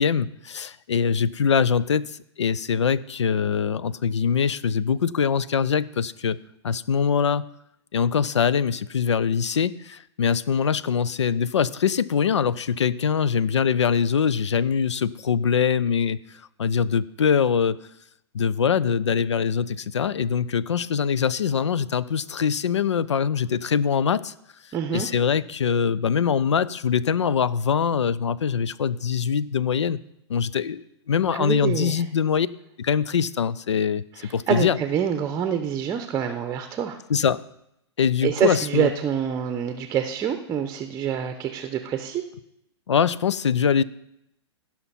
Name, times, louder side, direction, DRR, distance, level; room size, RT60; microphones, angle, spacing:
voice 1, 0.0-6.4 6.6-7.5 7.9-16.2 16.6-17.8 18.3-24.3 24.9-30.0 30.3-32.5 32.8-34.0 34.3-34.8 37.1-37.4 38.0-38.9 42.9-43.8, left 7 dB, 80° left, 19 dB, 0.4 m, -23 dB
voice 2, 24.7-25.1 31.3-32.0 34.2-37.0 38.2-42.2, right 8 dB, 20° right, 7 dB, 0.8 m, -26 dB
16.0 x 5.8 x 4.2 m, 0.80 s
figure-of-eight pair, 110°, 15 cm